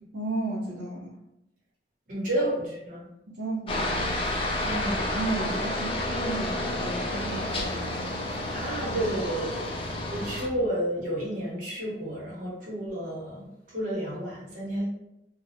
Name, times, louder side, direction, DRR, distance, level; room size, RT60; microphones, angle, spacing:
voice 1, 0.1-1.1 3.4-4.1 5.2-8.1 8.8-9.0, right 2 dB, 80° right, -6 dB, 0.5 m, -34 dB
voice 2, 2.1-3.1 4.6-5.2 5.5-5.7 8.5-14.9, right 1 dB, 50° right, -6 dB, 1.0 m, -31 dB
Aircraft, 3.7-10.5, left 1 dB, 30° left, 0.4 m, -30 dB
2.3 x 2.0 x 2.8 m, 0.82 s
head